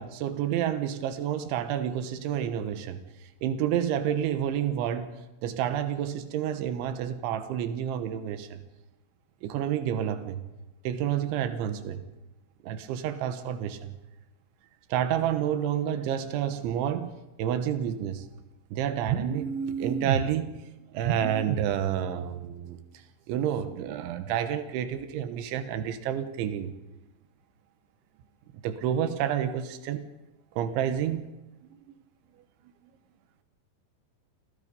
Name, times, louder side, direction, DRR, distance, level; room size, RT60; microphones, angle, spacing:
voice 1, 0.0-3.0 3.4-5.2 5.4-8.6 9.4-10.4 10.9-12.0 12.6-13.9 14.9-17.1 17.4-18.3 18.7-20.6 20.9-22.8 23.3-26.7 28.6-30.0 30.6-31.3, right 9 dB, 90° right, 9 dB, 3.6 m, -29 dB
30.0 x 25.0 x 5.4 m, 1.0 s
omnidirectional pair, 5.2 m